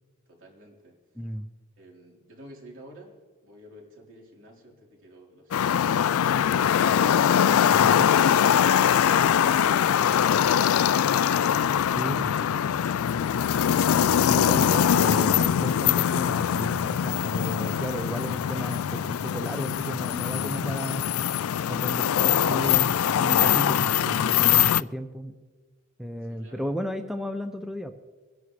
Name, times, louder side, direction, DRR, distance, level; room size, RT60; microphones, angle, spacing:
voice 1, 0.3-1.0 1.8-8.1 26.2-26.7, right 1 dB, 60° right, -2 dB, 3.8 m, -50 dB
voice 2, 1.2-1.5 7.6-8.1 12.0-12.5 14.2-21.1 21.7-25.3 26.0-27.9, equal, ahead, 6 dB, 0.5 m, -34 dB
sound 1, 5.5-24.8, left 9 dB, 75° left, 0.4 m, -22 dB
24.0 x 11.0 x 3.2 m, 1.4 s
head